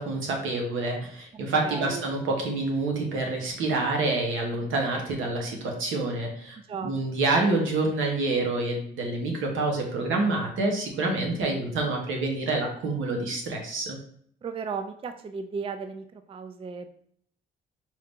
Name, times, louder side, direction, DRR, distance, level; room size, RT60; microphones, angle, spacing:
voice 1, 0.0-6.6 6.8-14.0, right 2 dB, 80° right, 1 dB, 1.2 m, -27 dB
voice 2, 1.6-2.0 6.7-6.9 14.4-16.9, right 5 dB, 30° right, 8 dB, 0.4 m, -35 dB
4.7 x 2.7 x 3.6 m, 0.65 s
cardioid pair, 90°, 20 cm